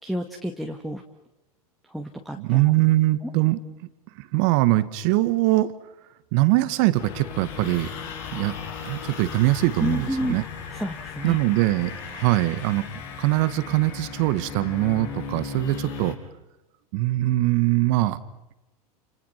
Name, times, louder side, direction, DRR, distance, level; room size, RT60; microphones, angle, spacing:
voice 1, 0.0-1.0 1.9-2.6 9.8-10.4 10.7-11.4, equal, ahead, 2 dB, 2.1 m, -30 dB
voice 2, 2.4-3.6 4.2-5.7 6.3-7.9 8.3-8.5 8.8-10.4 11.2-12.9 13.2-16.2 16.9-18.2, right 17 dB, 55° right, 13 dB, 1.8 m, -22 dB
sound 1, 6.9-16.1, left 6 dB, 55° left, 5.2 m, -37 dB
29.0 x 27.5 x 5.9 m, 0.96 s
hypercardioid pair, 105°, 19 cm